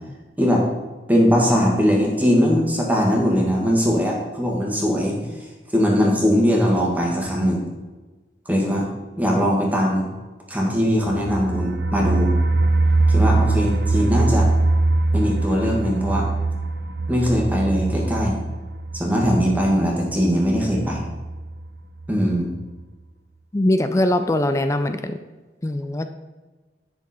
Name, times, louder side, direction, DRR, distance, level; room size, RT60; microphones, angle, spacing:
voice 1, 1.1-5.2 5.7-7.6 8.5-8.9 9.2-10.1 10.5-12.3 13.1-14.5 15.1-16.3 17.1-18.4 18.9-21.1 22.1-22.5, equal, 10° right, -1 dB, 1.6 m, -20 dB
sound 1, 11.0-21.7 22.0-22.1 22.4-22.5, right 2 dB, 75° right, 0.6 m, -22 dB
voice 2, 23.5-25.2 25.6-26.1, left 1 dB, 15° left, 9 dB, 0.4 m, -21 dB
10.0 x 6.0 x 4.2 m, 1.3 s
head